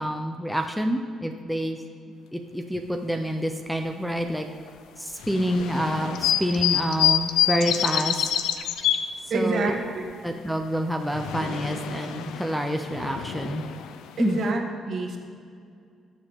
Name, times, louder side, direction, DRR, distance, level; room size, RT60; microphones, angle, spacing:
voice 1, 0.0-1.8 2.3-4.5 5.0-8.3 9.3-9.7 10.2-13.7 14.2-14.4, equal, ahead, 3 dB, 0.7 m, -27 dB
sound 1, 5.2-9.0 10.7-14.5, left 10 dB, 90° left, 0.6 m, -27 dB
voice 2, 9.3-10.0 14.2-15.2, right 3 dB, 55° right, 2 dB, 1.6 m, -27 dB
20.0 x 7.3 x 3.7 m, 2.3 s
cardioid pair, 115°, 0 cm